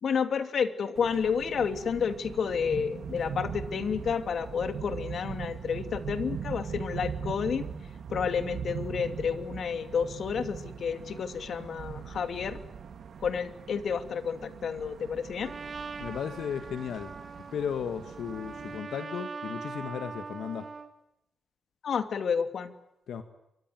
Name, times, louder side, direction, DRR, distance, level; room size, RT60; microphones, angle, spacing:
voice 1, 0.0-7.7 8.1-12.6 13.2-15.5 21.8-22.7, left 6 dB, 60° left, 9 dB, 2.6 m, -30 dB
sound 1, 1.0-18.8, right 7 dB, 65° right, 3.6 m, -41 dB
Trumpet, 15.4-20.9, right 4 dB, 40° right, 4.4 m, -42 dB
voice 2, 16.0-17.1 17.5-20.7 23.1-23.2, left 7 dB, 80° left, 8 dB, 2.0 m, -35 dB
29.5 x 24.5 x 7.8 m, 0.84 s
cardioid pair, 115°, 0 cm